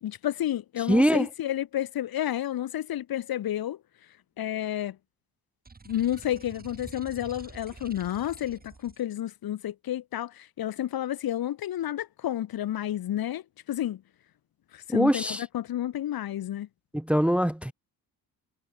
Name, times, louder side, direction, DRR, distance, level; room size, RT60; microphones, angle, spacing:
voice 1, 0.0-3.8 4.4-5.0 5.9-13.4 13.7-14.0 14.7-15.2 15.5-16.7, left 12 dB, 60° left, 2.5 m, -30 dB
voice 2, 0.8-1.3 14.9-15.4 16.9-17.7, equal, 5° right, 0.9 m, -23 dB
sound 1, 5.6-9.0, right 4 dB, 20° right, 3.3 m, -48 dB
cardioid pair, 95°, 40 cm